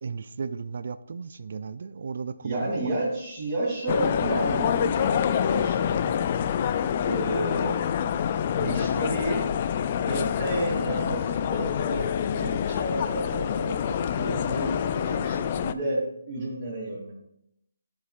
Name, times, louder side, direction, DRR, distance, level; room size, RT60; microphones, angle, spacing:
voice 1, 0.0-2.9, right 5 dB, 55° right, 14 dB, 0.4 m, -35 dB
voice 2, 2.4-6.2 7.0-7.8 8.6-9.5 10.0-17.1, right 1 dB, 25° right, -8 dB, 2.9 m, -31 dB
sound 1, 3.9-15.7, left 8 dB, 35° left, 0.3 m, -26 dB
11.5 x 7.3 x 2.5 m, 0.78 s
figure-of-eight pair, 155°, 0 cm